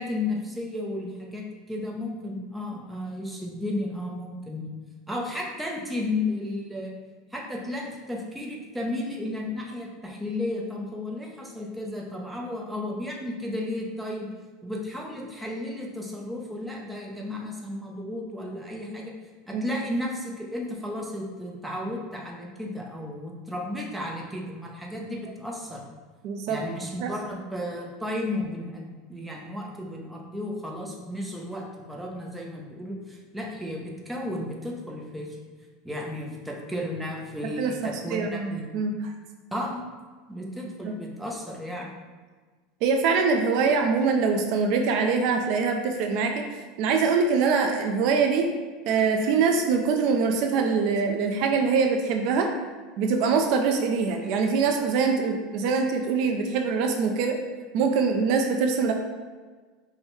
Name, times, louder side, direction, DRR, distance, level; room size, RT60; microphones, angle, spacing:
voice 1, 0.0-4.7 5.1-6.9 7.3-14.3 14.6-19.1 19.5-25.8 26.5-35.3 35.8-38.6 39.5-39.8 40.3-41.9, left 1 dB, 5° right, -2 dB, 0.6 m, -33 dB
voice 2, 26.2-26.6 27.0-27.1 37.6-39.1 40.8-41.0 42.8-46.5 46.8-48.5 48.9-52.5 53.0-57.4 57.7-58.9, right 5 dB, 55° right, 3 dB, 0.4 m, -24 dB
5.5 x 2.1 x 3.1 m, 1.4 s
supercardioid pair, 145°, 0 cm